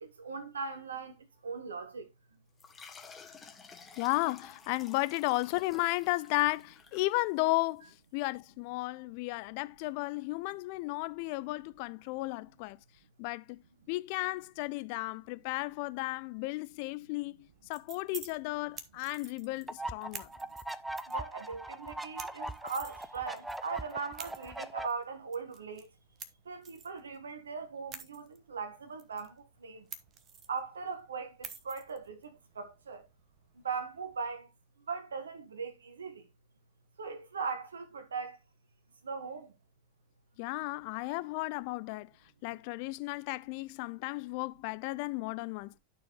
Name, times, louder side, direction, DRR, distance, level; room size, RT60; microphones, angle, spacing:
voice 1, 0.0-1.1 1.4-2.1 21.1-25.9 26.5-29.3 29.6-29.8 30.5-33.1 33.6-34.5 34.9-36.2 37.0-38.4 39.0-39.5, right 5 dB, 70° right, 1.2 m, -39 dB
sound 1, 2.6-7.7, left 5 dB, 20° left, 1.3 m, -53 dB
voice 2, 4.0-12.8 13.2-20.3 40.4-42.1 42.4-45.7, left 22 dB, 45° left, 0.4 m, -34 dB
sound 2, 17.4-34.3, right 6 dB, 30° right, 0.9 m, -52 dB
sound 3, 19.7-24.9, right 2 dB, 5° right, 0.5 m, -41 dB
12.0 x 4.5 x 2.9 m
figure-of-eight pair, 90°, 0 cm